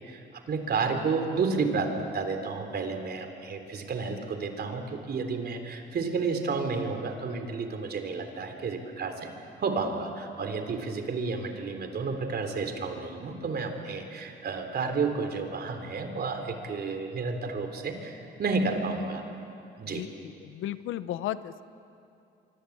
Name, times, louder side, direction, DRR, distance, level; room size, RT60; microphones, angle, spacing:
voice 1, 0.0-19.2 19.8-20.0, right 4 dB, 55° right, 6 dB, 3.6 m, -31 dB
voice 2, 19.8-21.6, left 12 dB, 85° left, 14 dB, 0.8 m, -35 dB
25.5 x 24.5 x 8.7 m, 2.6 s
cardioid pair, 90°, 20 cm